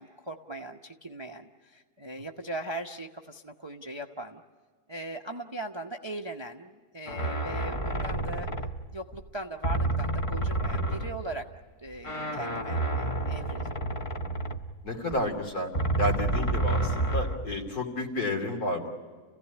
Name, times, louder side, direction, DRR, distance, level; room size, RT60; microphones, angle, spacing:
voice 1, 0.0-4.4 4.9-8.5 8.9-11.5 11.8-13.7, right 1 dB, 25° right, 4 dB, 0.6 m, -39 dB
sound 1, 7.1-9.3 9.6-11.5 11.9-15.2 15.7-17.7, right 2 dB, 25° left, 0.8 m, -30 dB
voice 2, 14.8-15.7 16.0-18.9, left 1 dB, 70° left, 2 dB, 3.4 m, -31 dB
29.5 x 16.5 x 10.0 m, 1.5 s
omnidirectional pair, 1.7 m